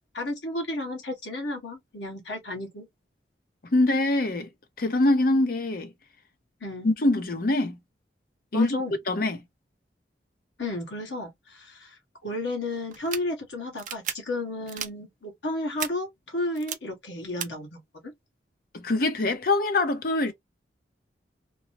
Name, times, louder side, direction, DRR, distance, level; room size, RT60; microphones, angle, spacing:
voice 1, 0.1-2.9 6.6-6.9 8.5-8.9 10.6-18.1, left 2 dB, 80° left, 1.3 m, -33 dB
voice 2, 3.6-4.5 4.8-5.9 6.8-7.8 8.5-8.8 9.1-9.4 18.7-20.3, left 2 dB, 55° left, 0.6 m, -24 dB
sound 1, 12.9-13.2 13.8-14.1 14.7-14.9 15.8-15.9 16.6-16.8 17.4-17.5, right 9 dB, 45° right, 0.5 m, -33 dB
2.9 x 2.0 x 2.8 m
head